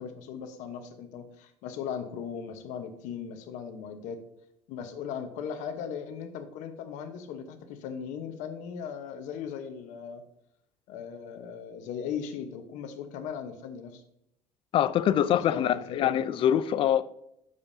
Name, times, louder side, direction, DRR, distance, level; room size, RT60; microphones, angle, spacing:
voice 1, 0.0-4.2 4.7-10.2 10.9-14.0 15.3-16.1, left 7 dB, 80° left, 1.1 m, -38 dB
voice 2, 14.7-17.0, left 10 dB, 45° left, 0.4 m, -24 dB
8.7 x 6.8 x 2.7 m
cardioid pair, 140°, 13 cm